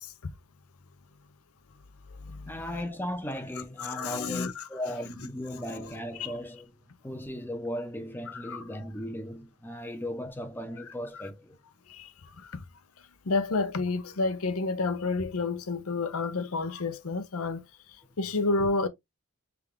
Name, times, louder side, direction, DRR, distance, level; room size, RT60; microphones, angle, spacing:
voice 1, 2.5-6.7 7.0-11.6 18.0-18.2, left 1 dB, 10° left, 0.6 m, -37 dB
voice 2, 3.8-4.6 6.2-6.3 8.5-8.6 13.3-17.6 18.2-18.9, left 3 dB, 75° left, 0.7 m, -29 dB
3.5 x 3.5 x 3.5 m
head